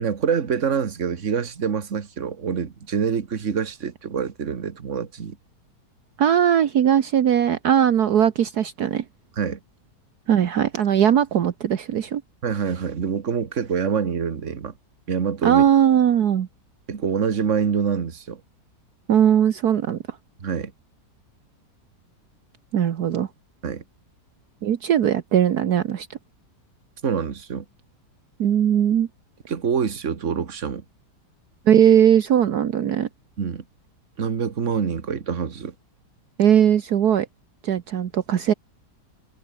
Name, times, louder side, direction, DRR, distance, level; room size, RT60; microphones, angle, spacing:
voice 1, 0.0-5.4 9.4-9.6 12.4-14.7 15.1-15.6 16.9-18.4 20.4-20.7 23.6-23.8 27.0-27.7 29.5-30.8 33.4-33.6 34.2-35.7, right 6 dB, 45° right, 1.9 m, -26 dB
voice 2, 6.2-9.1 10.3-12.2 15.4-16.5 19.1-20.2 22.7-23.3 24.6-26.1 28.4-29.1 31.7-33.1 36.4-37.3 37.6-38.5, right 9 dB, 65° right, 1.6 m, -19 dB
omnidirectional pair, 1.8 m